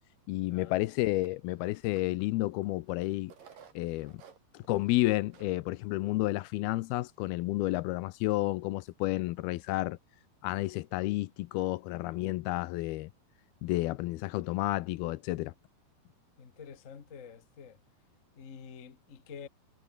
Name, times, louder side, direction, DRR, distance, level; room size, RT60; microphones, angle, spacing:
voice 1, 0.3-3.3 3.8-4.1 4.5-10.0 10.4-13.1 13.6-15.5, left 18 dB, 80° left, 2.6 m, -31 dB
sound 1, 1.2-1.7 2.5-2.6 3.3-4.7 5.0-5.1 5.3-5.6 6.1-6.2 6.8-7.1, right 7 dB, 60° right, 4.5 m, -55 dB
voice 2, 16.4-17.8 18.4-19.5, left 6 dB, 60° left, 0.8 m, -48 dB
omnidirectional pair, 4.6 m